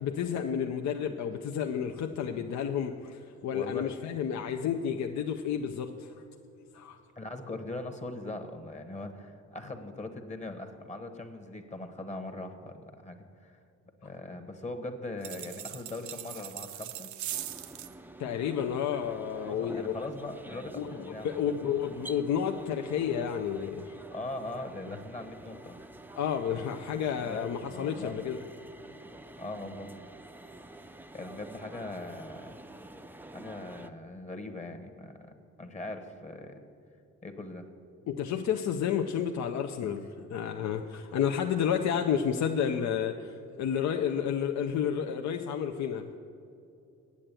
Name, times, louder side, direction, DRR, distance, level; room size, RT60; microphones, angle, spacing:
voice 1, 0.0-6.1 6.7-7.0 18.2-20.0 20.8-20.9 21.2-24.0 26.2-28.4 38.1-46.2, left 8 dB, 65° left, 5 dB, 0.6 m, -31 dB
voice 2, 3.5-4.0 7.2-13.6 14.0-17.1 19.4-21.7 24.1-25.8 27.2-28.2 29.4-29.9 31.1-32.6 33.3-35.3 35.6-36.6 37.2-37.6, left 2 dB, 25° left, 7 dB, 1.1 m, -40 dB
sound 1, 15.2-17.9, right 11 dB, 70° right, 0.6 m, -40 dB
sound 2, 17.3-33.9, right 1 dB, 5° right, 0.5 m, -48 dB
8.5 x 7.7 x 9.0 m, 2.6 s
cardioid pair, 90°, 30 cm